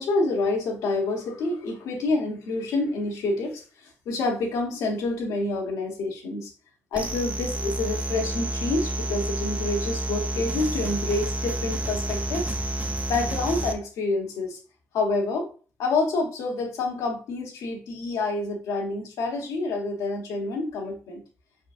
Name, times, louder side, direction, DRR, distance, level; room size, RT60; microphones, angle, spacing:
voice 1, 0.0-6.5 6.9-12.5 13.1-14.6 14.9-15.5 15.8-21.2, left 3 dB, 80° left, 1 dB, 1.1 m, -28 dB
sound 1, 6.9-13.7, right 1 dB, 25° right, 0.7 m, -29 dB
4.6 x 4.0 x 2.5 m, 0.36 s
supercardioid pair, 50°, 6 cm